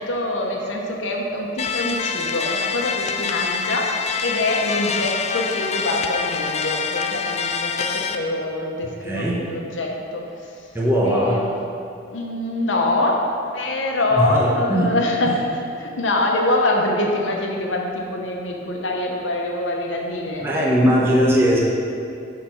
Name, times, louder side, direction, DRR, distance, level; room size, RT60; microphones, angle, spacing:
voice 1, 0.0-3.9 4.2-10.2 11.0-11.5 12.1-13.2 13.5-15.3 15.8-20.5 20.8-20.9, left 2 dB, 85° left, 0 dB, 0.9 m, -24 dB
sound 1, 1.6-8.1, left 5 dB, 35° left, 0.3 m, -25 dB
voice 2, 9.0-9.5 10.7-11.5 14.1-14.9 15.2-15.3 20.4-21.6, equal, 15° right, -6 dB, 0.9 m, -19 dB
6.7 x 4.2 x 5.6 m, 2.6 s
head